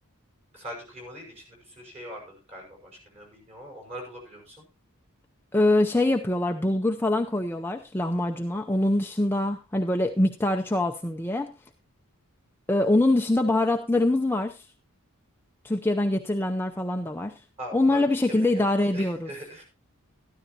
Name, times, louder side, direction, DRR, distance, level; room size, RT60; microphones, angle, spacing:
voice 1, 0.5-4.7 17.6-19.6, equal, 30° right, 0 dB, 5.8 m, -42 dB
voice 2, 5.5-11.5 12.7-14.6 15.6-17.3 17.7-19.3, left 1 dB, 10° left, 4 dB, 0.6 m, -24 dB
13.0 x 12.5 x 2.8 m, 0.28 s
head